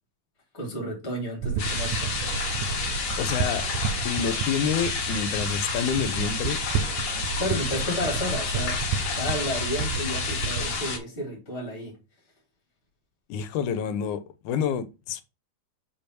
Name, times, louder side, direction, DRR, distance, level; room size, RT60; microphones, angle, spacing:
voice 1, 0.5-2.1 7.4-8.8 9.1-12.0, equal, 20° left, 2.3 m, -32 dB
sound 1, 1.4-10.8, right 6 dB, 80° right, 2.2 m, -32 dB
sound 2, 1.6-11.0, left 4 dB, 50° left, 1.4 m, -30 dB
voice 2, 3.2-3.6 4.0-6.6 13.3-15.2, left 7 dB, 80° left, 2.1 m, -28 dB
5.5 x 4.7 x 4.5 m
omnidirectional pair, 3.7 m